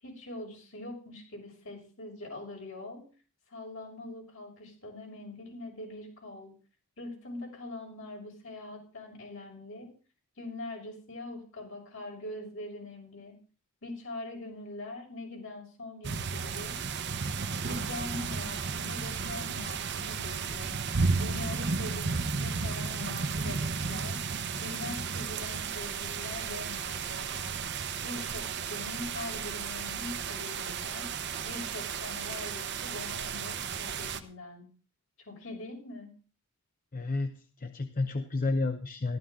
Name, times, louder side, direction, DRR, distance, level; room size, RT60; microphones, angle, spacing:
voice 1, 0.0-3.0 3.5-6.5 7.0-9.9 10.4-13.4 13.8-16.8 17.6-20.8 21.2-24.2 24.6-27.7 28.0-31.1 31.4-34.7 35.2-36.1, left 2 dB, 70° left, -1 dB, 6.4 m, -43 dB
sound 1, 16.0-34.2, right 5 dB, 50° right, 0.9 m, -33 dB
voice 2, 36.9-37.3 37.6-39.2, left 3 dB, 40° left, 8 dB, 0.7 m, -30 dB
14.5 x 13.0 x 3.7 m, 0.38 s
head